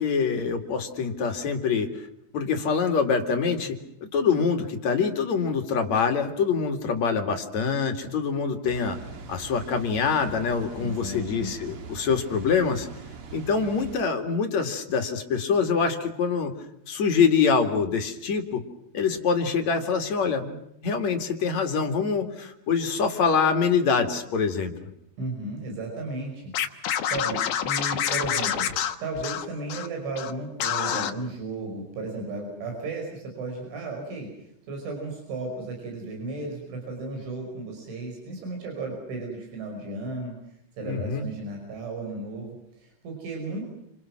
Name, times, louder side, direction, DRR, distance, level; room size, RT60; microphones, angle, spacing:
voice 1, 0.0-2.1 2.3-9.0 9.3-12.9 13.3-16.5 16.9-18.6 18.9-24.8 40.8-41.3, left 5 dB, 45° left, 5 dB, 2.9 m, -25 dB
Water, 8.6-14.0, right 4 dB, 55° right, 1.6 m, -42 dB
voice 2, 10.8-11.5 25.2-26.5 27.0-28.7 29.0-34.3 34.7-40.3 40.8-43.6, right 2 dB, 85° right, 2 dB, 7.9 m, -34 dB
Scratching (performance technique), 26.5-29.9 30.1-30.3 30.6-31.1, left 9 dB, 60° left, 2.1 m, -27 dB
29.5 x 27.0 x 6.1 m, 0.77 s
omnidirectional pair, 5.3 m